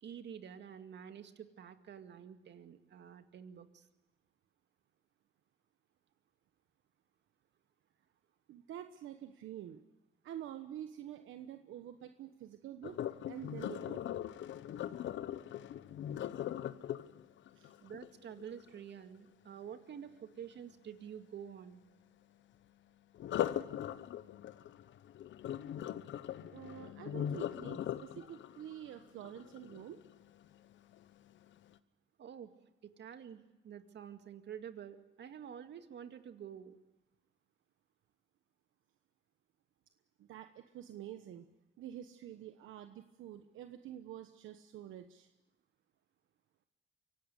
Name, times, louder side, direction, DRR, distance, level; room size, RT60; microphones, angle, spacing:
voice 1, 0.0-3.9 17.8-21.8 32.2-32.5 32.8-36.8, right 8 dB, 60° right, 8 dB, 2.2 m, -49 dB
voice 2, 8.5-9.8 10.2-14.2 17.5-17.7 26.5-30.0 40.2-41.4 41.8-45.3, right 11 dB, 80° right, 8 dB, 1.2 m, -48 dB
Sink (filling or washing), 12.8-18.8 23.2-30.2 30.7-31.0 31.5-31.6, left 11 dB, 70° left, 1.0 m, -40 dB
24.5 x 17.5 x 8.3 m, 1.0 s
cardioid pair, 90°, 20 cm